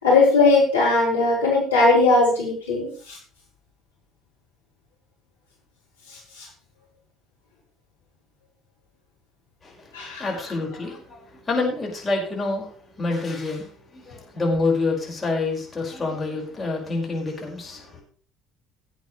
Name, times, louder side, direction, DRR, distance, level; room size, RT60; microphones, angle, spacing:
voice 1, 0.0-3.2 9.9-10.3, left 3 dB, 90° left, -6 dB, 4.3 m, -19 dB
voice 2, 9.6-13.7 13.9-18.0, left 3 dB, 25° left, -1 dB, 5.5 m, -27 dB
17.5 x 8.3 x 3.3 m, 0.42 s
hypercardioid pair, 60°, 0 cm